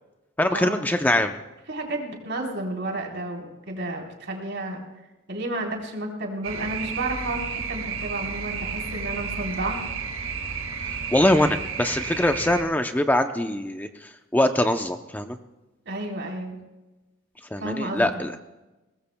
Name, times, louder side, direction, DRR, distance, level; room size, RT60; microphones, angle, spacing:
voice 1, 0.4-1.3 11.1-15.4 17.5-18.3, left 1 dB, 10° left, 7 dB, 0.6 m, -23 dB
voice 2, 1.7-4.8 5.3-9.8 15.9-16.6 17.6-18.1, right 2 dB, 60° right, 0 dB, 3.9 m, -31 dB
sound 1, 6.4-12.6, right 5 dB, 75° right, 1.8 m, -32 dB
22.0 x 19.5 x 2.2 m, 1.1 s
head